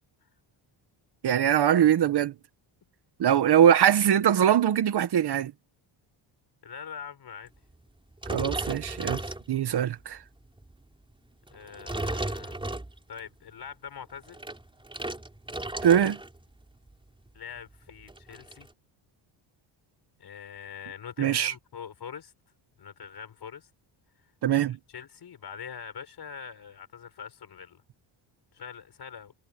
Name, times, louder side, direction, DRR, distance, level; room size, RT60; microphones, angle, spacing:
voice 1, 1.2-2.3 3.2-5.5 8.3-9.2 9.5-10.2 15.8-16.2 21.2-21.5 24.4-24.8, right 9 dB, 55° right, 1.2 m, -22 dB
voice 2, 6.6-7.5 11.5-12.6 13.1-14.4 17.3-18.7 20.2-22.3 22.8-23.7 24.5-27.8 28.5-29.3, left 7 dB, 50° left, 5.8 m, -43 dB
sound 1, 8.2-9.9 10.4-10.7 11.5-13.3 14.1-16.4 16.6-16.9 17.3-17.4 17.6-18.7, right 2 dB, 10° right, 4.4 m, -35 dB
cardioid pair, 120°, 48 cm